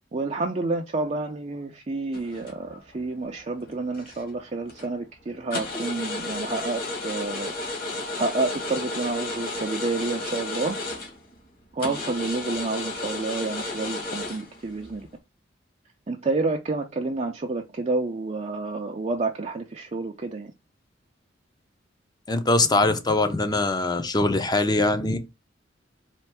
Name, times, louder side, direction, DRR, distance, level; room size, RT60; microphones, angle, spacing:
voice 1, 0.1-7.5 8.2-10.8 11.7-15.1 16.1-20.5, right 3 dB, 35° right, 0.5 m, -29 dB
sound 1, 2.1-2.9 3.3-4.3 4.7-4.9 5.5-11.3 11.8-15.1, left 2 dB, 50° left, 1.9 m, -33 dB
voice 2, 22.3-25.2, left 2 dB, 20° left, 0.6 m, -22 dB
4.4 x 2.5 x 4.5 m
head